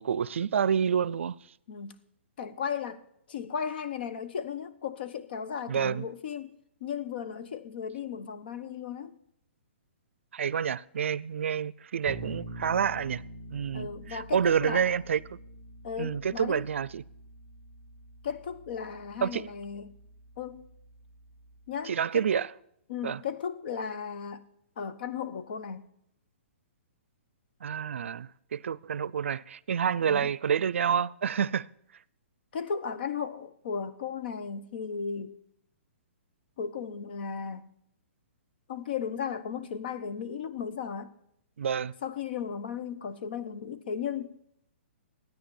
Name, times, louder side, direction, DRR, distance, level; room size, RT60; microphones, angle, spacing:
voice 1, 0.0-1.3 5.7-6.0 10.3-13.2 13.5-15.2 16.0-17.0 19.2-19.4 21.9-22.5 23.0-23.2 27.6-31.7 41.6-41.9, right 7 dB, 85° right, 0.4 m, -28 dB
voice 2, 2.4-3.0 3.3-6.5 6.8-9.2 13.7-15.0 15.8-16.6 18.2-19.9 20.4-20.7 21.7-22.5 22.9-24.4 24.8-25.9 30.0-30.3 32.5-35.4 36.6-37.7 38.7-41.1 42.0-44.4, left 7 dB, 50° left, 1.0 m, -35 dB
Bass guitar, 12.1-21.9, right 1 dB, ahead, 1.2 m, -46 dB
13.0 x 9.4 x 7.0 m
hypercardioid pair, 165°, 7 cm